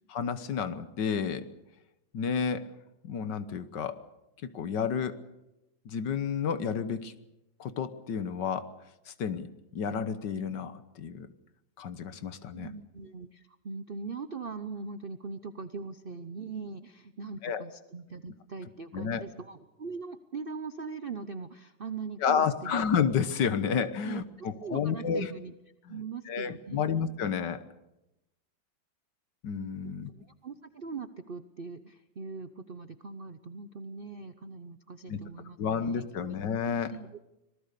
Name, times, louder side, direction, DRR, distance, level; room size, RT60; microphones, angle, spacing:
voice 1, 0.1-1.5 2.1-2.7 3.0-4.0 4.4-5.2 5.8-7.1 7.6-8.7 9.1-9.5 9.7-11.3 11.8-12.7 17.4-17.6 18.9-19.2 22.2-25.3 25.9-26.0 26.3-27.6 29.4-30.1 35.1-35.2 35.6-36.9, left 7 dB, 65° left, 12 dB, 1.7 m, -30 dB
voice 2, 12.5-22.7 24.0-25.5 25.9-27.0 29.8-36.4 36.9-37.2, right 4 dB, 50° right, 11 dB, 0.6 m, -41 dB
26.0 x 19.5 x 6.8 m, 0.93 s
omnidirectional pair, 2.1 m